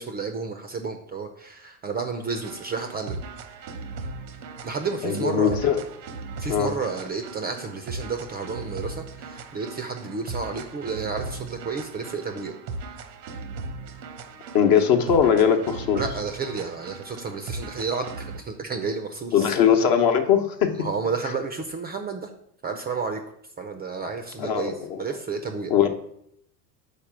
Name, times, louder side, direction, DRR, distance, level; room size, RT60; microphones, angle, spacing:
voice 1, 0.0-3.2 4.6-5.6 6.4-12.5 15.9-19.5 20.8-22.3 22.6-23.2 23.6-25.7, right 4 dB, 20° right, 6 dB, 0.5 m, -31 dB
sound 1, 2.4-18.5, right 3 dB, 85° right, 0.9 m, -38 dB
voice 2, 5.0-5.8 6.5-6.7 14.5-16.0 19.3-20.7 24.4-25.0 25.7-25.9, left 8 dB, 45° left, 6 dB, 1.0 m, -20 dB
5.2 x 4.1 x 6.0 m, 0.73 s
hypercardioid pair, 95°, 49 cm